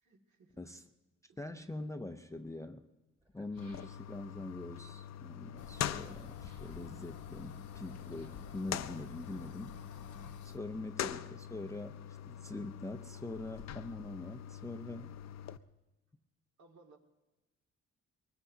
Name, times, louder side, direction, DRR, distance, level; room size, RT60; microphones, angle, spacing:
voice 1, 0.0-0.7 1.3-1.4 16.6-17.0, right 3 dB, 70° right, 1 dB, 2.1 m, -62 dB
voice 2, 1.4-2.9 3.3-9.8 10.4-12.0 12.3-15.1, left 2 dB, 10° left, 7 dB, 0.4 m, -44 dB
sound 1, 3.1-4.4 6.3-6.8 8.0-8.5 9.4-10.2 10.5-10.6, right 1 dB, 15° right, 1.4 m, -67 dB
sound 2, 3.6-15.6, left 10 dB, 65° left, 0.5 m, -44 dB
sound 3, 5.6-10.6, left 5 dB, 85° left, 1.0 m, -52 dB
23.0 x 20.0 x 2.7 m, 1.0 s
wide cardioid pair, 165°, 29 cm